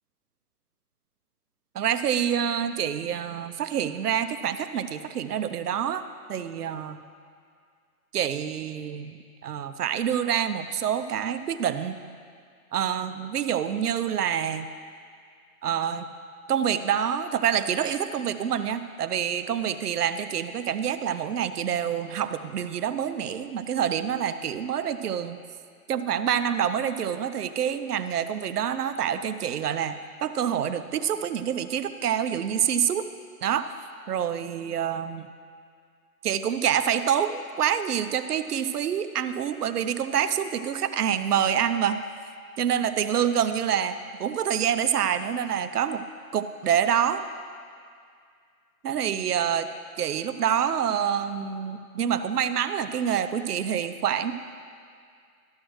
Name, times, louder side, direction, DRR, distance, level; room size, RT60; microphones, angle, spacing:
voice 1, 1.7-6.0 6.3-7.0 8.1-12.0 12.7-14.7 15.6-16.1 16.5-25.4 25.9-29.9 30.2-33.1 33.4-33.7 34.1-35.3 36.2-42.0 42.6-46.0 46.3-47.2 48.8-49.7 50.0-54.3, right 9 dB, 85° right, 11 dB, 0.7 m, -27 dB
12.5 x 6.4 x 3.2 m, 2.2 s
hypercardioid pair, 170°, 45 cm